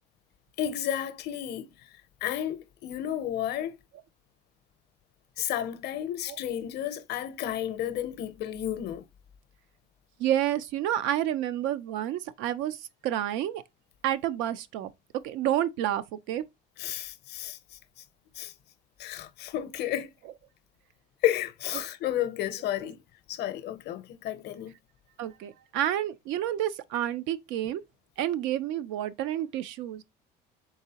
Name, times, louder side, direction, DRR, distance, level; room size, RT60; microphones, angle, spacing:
voice 1, 0.6-1.7 2.2-3.7 5.4-9.0 16.8-17.6 18.4-18.5 19.0-20.1 21.2-23.0 23.3-24.7, left 11 dB, 55° left, 0.6 m, -32 dB
voice 2, 10.2-13.6 14.0-14.9 15.2-16.4 21.7-21.8 22.8-22.9 25.2-27.8 28.2-30.0, right 12 dB, 70° right, 0.5 m, -29 dB
4.0 x 3.7 x 2.8 m
cardioid pair, 110°, 20 cm